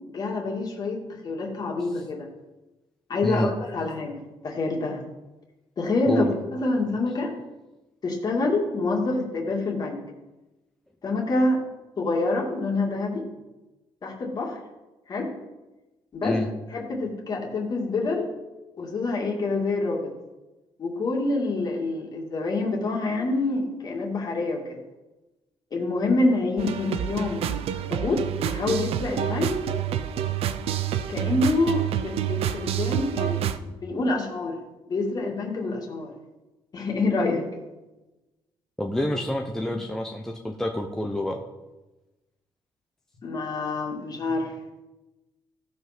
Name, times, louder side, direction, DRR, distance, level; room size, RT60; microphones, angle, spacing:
voice 1, 0.1-2.3 3.1-5.0 5.8-7.3 8.0-10.0 11.0-11.6 12.0-13.3 14.0-14.6 15.1-15.3 16.1-16.4 16.7-18.3 18.8-20.1 20.8-24.8 25.7-27.5 27.9-29.6 31.1-34.6 34.9-36.1 36.7-37.4 39.1-39.2 43.2-44.5, left 2 dB, 40° left, 0 dB, 2.4 m, -26 dB
sound 1, 26.6-33.6, right 10 dB, 75° right, 0.6 m, -28 dB
voice 2, 38.8-41.4, left 1 dB, 5° left, 1 dB, 0.7 m, -28 dB
15.5 x 5.4 x 6.1 m, 1.1 s
cardioid pair, 140°, 10 cm